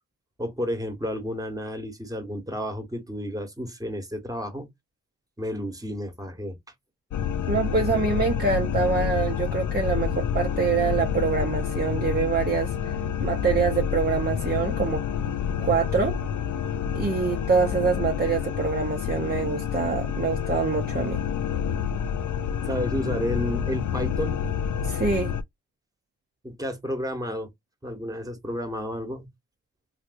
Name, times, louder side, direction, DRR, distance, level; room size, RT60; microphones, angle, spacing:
voice 1, 0.4-4.7 5.4-6.6 22.7-24.4 26.4-27.5 27.8-29.3, equal, 10° right, 1.2 m, -31 dB
sound 1, 7.1-25.4, left 8 dB, 70° left, 0.4 m, -28 dB
voice 2, 7.5-12.9 13.2-15.0 15.6-16.2 16.9-21.2 24.8-25.4, right 5 dB, 30° right, 0.7 m, -25 dB
3.2 x 2.6 x 2.5 m
cardioid pair, 60°, 32 cm